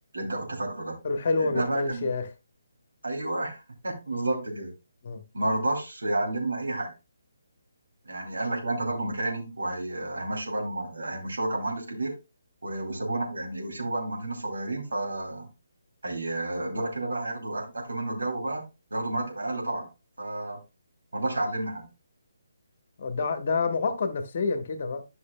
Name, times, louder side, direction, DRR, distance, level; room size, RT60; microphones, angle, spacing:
voice 1, 0.1-1.0 1.4-2.1 3.0-4.7 5.3-6.9 8.0-12.1 12.6-15.5 16.0-18.6 18.9-19.9 20.2-20.6 21.1-21.9, right 2 dB, 70° right, 2.9 m, -31 dB
voice 2, 1.0-2.3 5.0-5.2 23.0-25.0, left 4 dB, 45° left, 1.1 m, -28 dB
11.5 x 5.9 x 2.2 m
figure-of-eight pair, 145°, 0 cm